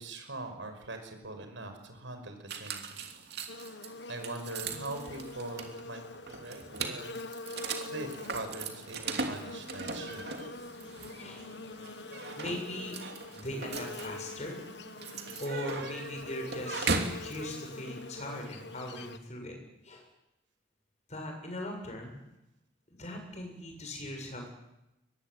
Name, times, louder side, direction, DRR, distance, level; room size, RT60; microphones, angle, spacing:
voice 1, 0.0-3.1 4.1-7.2 7.7-10.4, right 2 dB, 75° right, 6 dB, 5.6 m, -42 dB
sound 1, 2.5-17.2, right 4 dB, 55° right, 3.0 m, -39 dB
Buzz, 3.5-19.2, left 2 dB, 60° left, 1.3 m, -44 dB
voice 2, 12.4-13.0 13.3-14.6 15.4-16.9 17.2-19.6 19.8-20.1 21.1-22.2 23.0-24.5, left 1 dB, 35° left, 2 dB, 7.5 m, -39 dB
23.5 x 21.5 x 9.3 m, 0.92 s
head